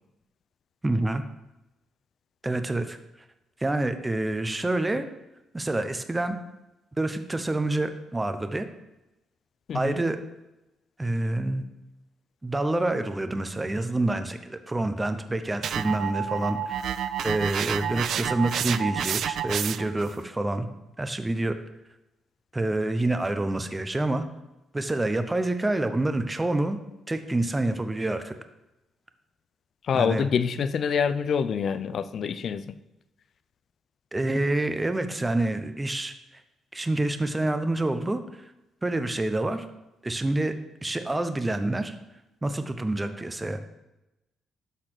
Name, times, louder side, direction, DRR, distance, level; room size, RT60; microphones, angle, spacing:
voice 1, 0.8-1.2 2.4-3.0 3.6-5.0 5.5-6.4 7.0-8.7 9.7-10.2 11.0-11.7 12.4-16.7 17.2-20.7 21.0-21.6 22.5-24.2 24.7-26.8 27.1-28.3 29.9-30.3 34.1-36.1 36.7-38.2 38.8-39.6 40.0-40.6 40.8-42.0 42.4-43.6, right 2 dB, 15° right, 9 dB, 0.9 m, -27 dB
voice 2, 9.7-10.0 29.9-32.7, left 7 dB, 60° left, 13 dB, 0.6 m, -26 dB
sound 1, 15.6-20.0, right 9 dB, 65° right, 0.4 m, -29 dB
12.0 x 4.1 x 6.8 m, 0.95 s
cardioid pair, 90°, 0 cm